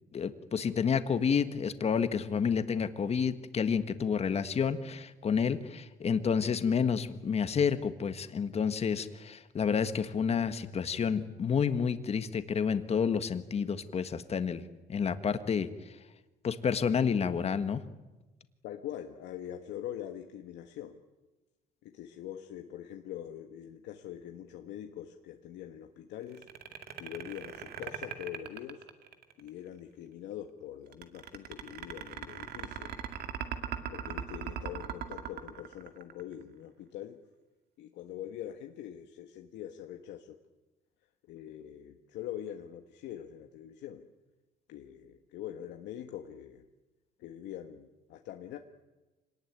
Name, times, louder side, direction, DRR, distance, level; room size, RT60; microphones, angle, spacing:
voice 1, 0.1-14.6 14.9-15.7 16.4-17.8, left 6 dB, 35° left, 10 dB, 1.6 m, -29 dB
voice 2, 18.6-21.0 21.8-26.5 27.0-28.8 29.4-32.9 33.9-37.2 37.8-40.4 41.3-44.0 44.7-46.6 47.2-48.6, left 11 dB, 80° left, 4 dB, 1.5 m, -43 dB
sound 1, 26.3-29.5 30.9-36.4, right 8 dB, 60° right, 2.3 m, -39 dB
26.5 x 19.0 x 9.6 m, 1.1 s
cardioid pair, 120°, 18 cm